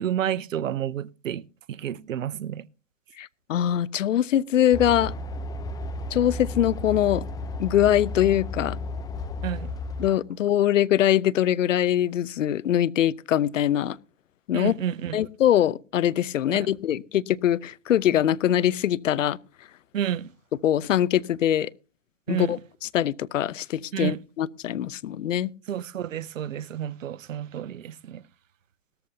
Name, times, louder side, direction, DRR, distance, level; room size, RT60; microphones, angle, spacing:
voice 1, 0.0-2.6 9.4-9.7 14.5-15.2 16.5-16.6 19.9-20.3 22.3-22.6 23.9-24.2 25.7-28.2, right 10 dB, 80° right, 0.8 m, -30 dB
voice 2, 3.2-5.1 6.1-7.2 7.6-8.8 10.0-14.0 14.5-14.7 15.1-19.4 20.6-21.7 22.3-25.5, left 11 dB, 75° left, 0.9 m, -23 dB
sound 1, 4.7-10.1, left 2 dB, 10° left, 0.7 m, -33 dB
19.0 x 14.0 x 2.8 m
hypercardioid pair, 135°, 38 cm